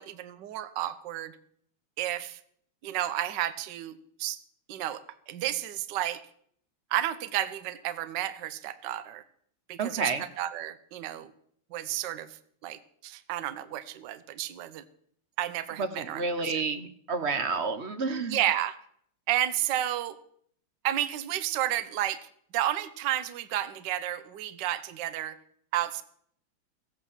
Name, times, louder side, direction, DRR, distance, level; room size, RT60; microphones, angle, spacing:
voice 1, 0.0-1.3 2.0-2.4 2.8-4.4 4.7-5.0 5.3-6.2 6.9-9.2 9.7-10.0 10.4-11.3 11.7-12.3 12.6-14.8 15.4-16.5 18.3-18.7 19.3-20.2 20.8-22.2 22.5-25.4 25.7-26.0, right 12 dB, 65° right, 13 dB, 1.3 m, -31 dB
voice 2, 9.8-10.2 15.8-18.4, right 4 dB, 45° right, 9 dB, 0.9 m, -30 dB
15.5 x 8.2 x 7.2 m, 0.64 s
omnidirectional pair, 2.3 m